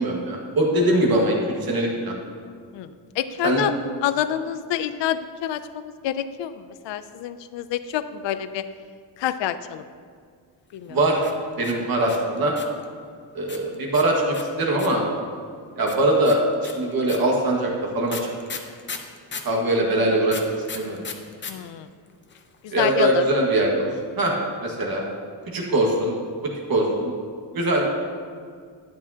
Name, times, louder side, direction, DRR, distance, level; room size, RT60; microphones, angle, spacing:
voice 1, 0.0-2.2 3.4-3.6 10.9-11.2 11.6-12.5 13.3-15.0 15.8-18.3 19.4-20.4 20.7-21.0 22.7-23.9 24.2-24.3 24.6-25.0 25.5-26.1 26.4-27.1 27.5-27.9, right 1 dB, 50° right, -1 dB, 1.8 m, -22 dB
voice 2, 3.2-3.7 4.0-8.7 9.2-9.8 10.7-11.0 21.5-21.9 22.6-23.2, left 11 dB, 70° left, 12 dB, 0.5 m, -27 dB
sound 1, 11.2-12.8 13.5-15.1 15.9-19.6 20.3-21.5 21.8-21.9 22.1-22.6, left 5 dB, 25° left, 0.7 m, -36 dB
12.0 x 9.7 x 2.8 m, 2.1 s
cardioid pair, 150°, 45 cm